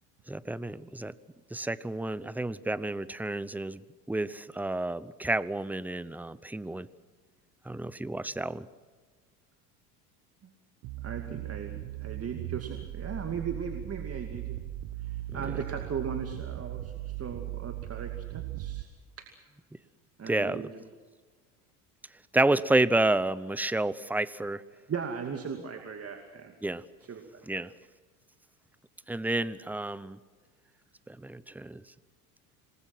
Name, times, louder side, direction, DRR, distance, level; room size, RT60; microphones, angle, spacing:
voice 1, 0.3-1.1 1.5-3.8 4.1-6.9 7.7-8.7 20.3-20.7 22.3-24.6 26.6-26.8 27.5-27.7 29.1-30.2 31.1-31.8, right 2 dB, 5° right, 18 dB, 0.8 m, -30 dB
sound 1, 10.8-18.8, right 15 dB, 55° right, 1.3 m, -38 dB
voice 2, 11.0-14.6 15.0-18.9 19.2-19.4 20.2-20.8 24.9-26.5 27.0-27.6, right 6 dB, 30° right, 5 dB, 2.5 m, -38 dB
27.0 x 21.0 x 6.1 m, 1.5 s
hypercardioid pair, 80°, 45 cm